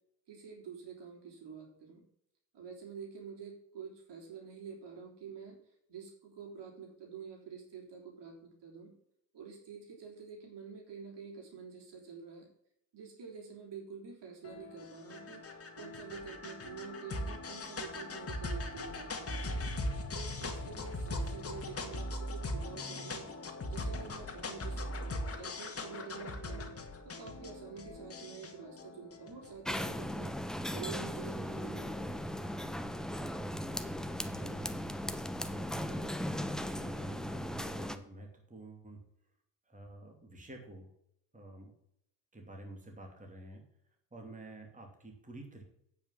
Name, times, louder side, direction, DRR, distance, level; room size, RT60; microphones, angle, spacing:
voice 1, 0.3-2.0 2.5-5.6 5.9-8.9 9.3-12.5 12.9-19.6 20.1-23.3 23.7-26.7 27.0-30.4 30.7-32.3, right 6 dB, 65° right, 1 dB, 3.5 m, -48 dB
sound 1, 14.4-30.0, left 1 dB, 30° left, 1.8 m, -40 dB
sound 2, 29.7-38.0, equal, ahead, 0.8 m, -37 dB
voice 2, 34.2-34.7 35.3-39.0 39.7-40.9 41.3-41.7 42.3-43.6 44.1-45.6, right 2 dB, 15° right, 1 dB, 2.7 m, -50 dB
8.9 x 5.7 x 5.8 m, 0.73 s
cardioid pair, 80°, 44 cm